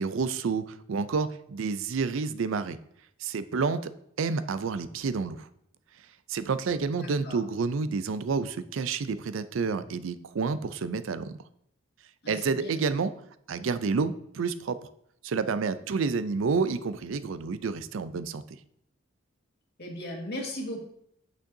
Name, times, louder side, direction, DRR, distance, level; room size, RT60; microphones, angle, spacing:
voice 1, 0.0-2.8 3.2-3.9 4.2-5.5 6.3-11.3 12.3-13.1 13.5-14.8 15.2-18.4, right 4 dB, 70° right, 13 dB, 0.4 m, -29 dB
voice 2, 7.0-7.4 12.2-12.8 19.8-20.8, left 1 dB, 55° left, 0 dB, 1.8 m, -37 dB
8.5 x 6.3 x 2.7 m, 0.72 s
head